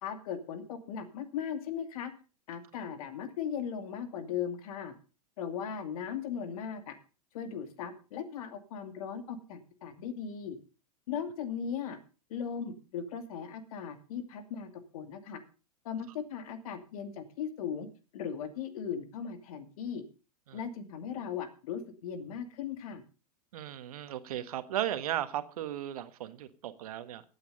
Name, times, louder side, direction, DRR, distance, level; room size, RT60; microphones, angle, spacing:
voice 1, 0.0-2.1 2.5-4.9 5.4-7.0 7.3-10.6 11.1-12.0 12.3-15.4 15.8-17.9 18.1-20.0 20.5-23.0, left 7 dB, 65° left, 9 dB, 2.5 m, -38 dB
voice 2, 23.5-27.2, right 12 dB, 70° right, 11 dB, 1.4 m, -36 dB
15.5 x 8.9 x 5.3 m, 0.35 s
hypercardioid pair, 105°, 20 cm